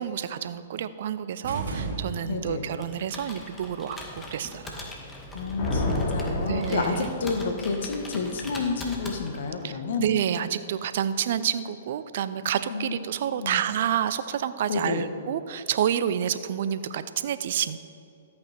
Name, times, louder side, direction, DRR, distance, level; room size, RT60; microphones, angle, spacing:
voice 1, 0.0-4.8 6.5-7.1 9.6-17.8, right 9 dB, 60° right, 13 dB, 0.6 m, -29 dB
sound 1, 1.4-2.7, right 3 dB, 75° right, 2.4 m, -33 dB
voice 2, 2.2-2.7 5.3-10.0 12.7-13.0 13.4-13.6 14.7-15.1, left 4 dB, 65° left, 5 dB, 1.5 m, -30 dB
Computer keyboard, 2.7-9.6, left 2 dB, 15° left, 1.9 m, -41 dB
Thunder, 5.1-7.5, left 1 dB, 50° left, 2.8 m, -30 dB
13.5 x 8.6 x 4.4 m, 2.5 s
hypercardioid pair, 125°, 0 cm